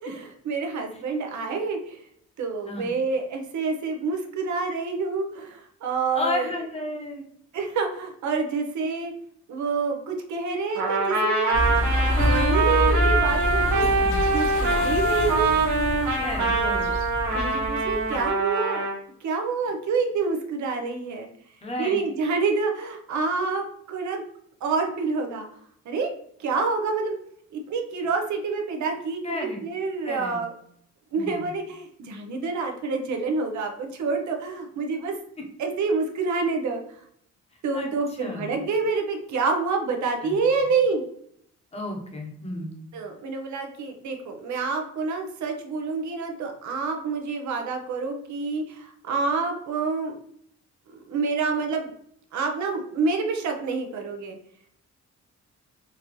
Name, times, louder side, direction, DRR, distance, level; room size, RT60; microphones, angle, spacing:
voice 1, 0.0-2.0 2.4-6.4 7.5-9.1 9.5-13.8 14.3-15.5 16.4-17.0 17.3-18.9 19.2-21.3 21.8-24.2 24.6-25.4 25.9-26.1 26.4-27.1 27.5-30.5 31.1-35.1 35.6-36.8 37.6-41.0 42.9-50.2 50.9-51.9 52.3-54.4, right 4 dB, 75° right, 3 dB, 0.7 m, -27 dB
voice 2, 6.1-7.2 14.0-14.2 16.2-16.9 21.6-22.0 29.2-29.6 30.0-30.4 31.1-31.5 37.7-37.9 38.2-38.5 40.2-40.4 41.7-42.8, left 1 dB, 20° left, 1 dB, 0.8 m, -33 dB
Trumpet, 10.7-19.0, right 3 dB, 90° right, 1.1 m, -24 dB
sound 1, 11.5-18.3, left 1 dB, 85° left, 1.0 m, -27 dB
4.0 x 2.6 x 3.0 m, 0.67 s
wide cardioid pair, 155°, 29 cm